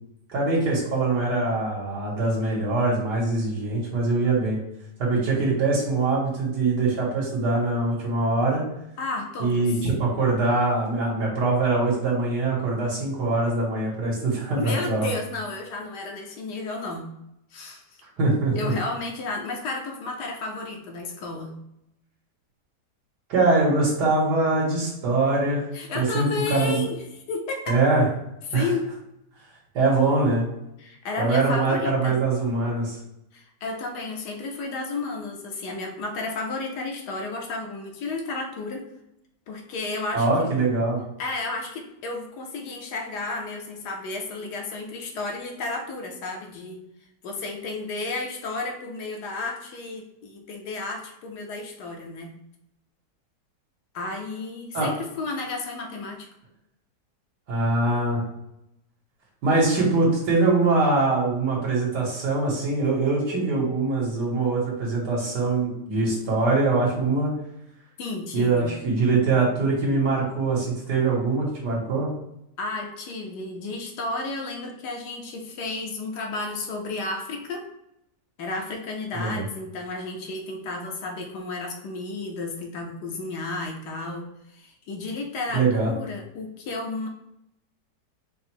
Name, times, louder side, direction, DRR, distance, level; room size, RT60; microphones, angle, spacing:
voice 1, 0.3-4.6 5.0-8.6 9.4-15.1 18.2-18.7 23.3-25.7 25.9-26.8 27.7-28.0 28.5-28.7 29.7-30.5 31.2-33.0 40.1-41.0 54.7-54.9 57.5-58.2 59.4-67.3 68.3-72.1 79.1-79.4 85.5-85.9, right 3 dB, 80° right, -4 dB, 1.7 m, -23 dB
voice 2, 9.0-9.7 14.6-17.1 17.5-17.8 18.5-21.5 25.7-27.8 28.5-28.9 30.8-32.2 33.3-38.9 39.5-40.5 41.2-46.8 47.2-52.3 53.9-56.3 68.0-68.7 72.6-77.6 78.4-84.3 84.5-87.1, left 3 dB, 80° left, 2 dB, 1.3 m, -32 dB
4.9 x 2.0 x 4.4 m, 0.82 s
omnidirectional pair, 1.8 m